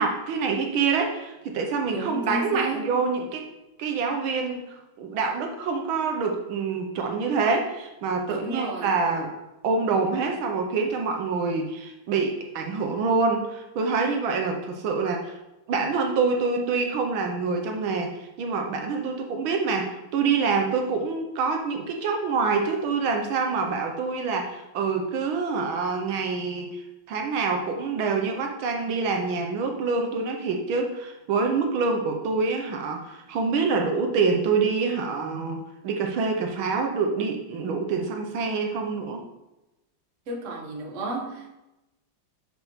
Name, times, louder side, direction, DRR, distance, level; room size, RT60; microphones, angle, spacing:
voice 1, 0.0-3.4 3.8-9.3 9.6-15.4 15.7-39.2, right 4 dB, 75° right, 3 dB, 1.5 m, -26 dB
voice 2, 1.9-2.9 8.3-8.9 40.3-41.5, right 2 dB, 50° right, 0 dB, 1.0 m, -32 dB
7.1 x 5.3 x 3.0 m, 0.96 s
omnidirectional pair, 2.4 m